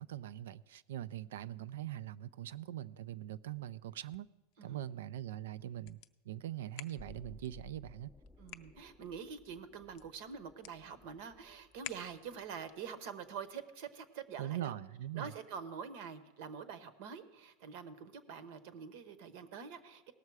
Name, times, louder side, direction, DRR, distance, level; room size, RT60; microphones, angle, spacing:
voice 1, 0.0-4.3 4.6-6.0 6.2-8.1 14.4-15.3, right 12 dB, 85° right, 0.4 m, -42 dB
sound 1, 3.8-12.5, left 14 dB, 55° left, 0.5 m, -55 dB
sound 2, 7.0-12.9 13.3-13.4, left 2 dB, ahead, 0.5 m, -59 dB
voice 2, 8.4-14.7 15.1-20.1, right 6 dB, 60° right, 1.0 m, -46 dB
18.0 x 6.6 x 4.7 m
supercardioid pair, 145°, 0 cm